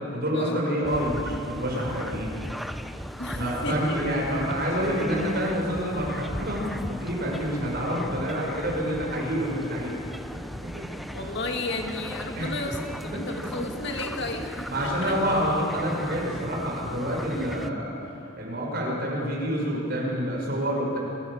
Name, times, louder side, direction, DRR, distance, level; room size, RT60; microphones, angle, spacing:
voice 1, 0.1-2.4 3.4-10.0 10.6-10.9 12.3-12.5 13.4-13.5 14.7-18.0 18.4-21.0, equal, 50° right, -2 dB, 5.8 m, -28 dB
sound 1, 0.8-17.7, equal, ahead, 0.5 m, -37 dB
voice 2, 3.2-4.0 7.0-7.1 11.1-15.2, left 2 dB, 55° left, 3 dB, 2.2 m, -33 dB
26.0 x 16.0 x 7.3 m, 2.7 s
head